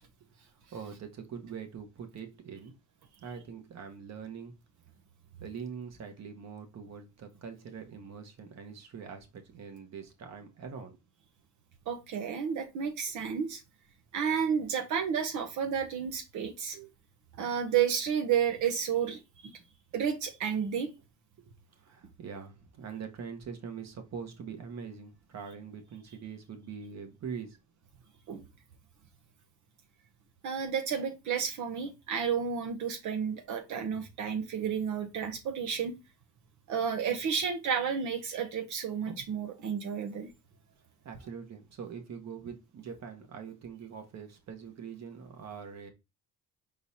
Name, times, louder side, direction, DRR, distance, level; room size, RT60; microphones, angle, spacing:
voice 1, 0.4-2.7 3.2-4.5 5.4-11.0 21.4-27.6 40.5-40.6 41.0-45.9, right 6 dB, 60° right, 1.3 m, -43 dB
voice 2, 11.9-13.6 14.1-16.9 17.4-19.5 19.9-20.9 28.3-28.4 30.4-35.9 36.7-40.3, right 7 dB, 75° right, 0.9 m, -31 dB
4.9 x 3.9 x 2.8 m
cardioid pair, 90°, 30 cm